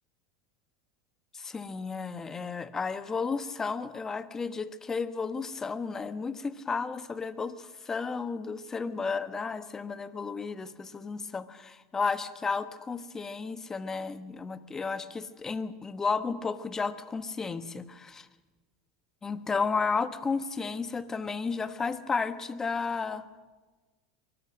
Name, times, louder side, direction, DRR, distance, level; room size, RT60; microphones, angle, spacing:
voice 1, 1.3-18.3 19.2-23.2, left 4 dB, 20° left, 11 dB, 1.3 m, -33 dB
24.0 x 20.0 x 6.3 m, 1.3 s
hypercardioid pair, 95°, 2 cm